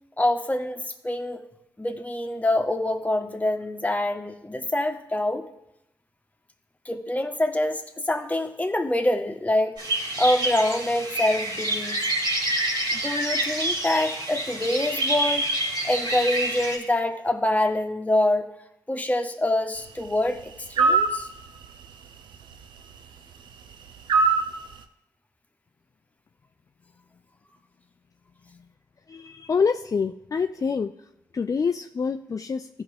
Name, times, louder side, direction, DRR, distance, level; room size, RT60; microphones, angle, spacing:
voice 1, 0.2-1.4 1.8-5.5 6.8-9.8 10.2-12.0 12.9-15.5 15.8-18.5 18.9-21.3, left 1 dB, 20° left, 5 dB, 1.2 m, -25 dB
sound 1, 9.8-16.8, right 1 dB, 70° right, 3.3 m, -27 dB
sound 2, 20.8-21.2 24.1-24.5, right 4 dB, 85° right, 0.6 m, -19 dB
voice 2, 29.1-30.9 31.3-32.7, left 5 dB, 45° left, 7 dB, 0.4 m, -26 dB
14.5 x 5.7 x 3.4 m, 0.84 s
supercardioid pair, 45°, 8 cm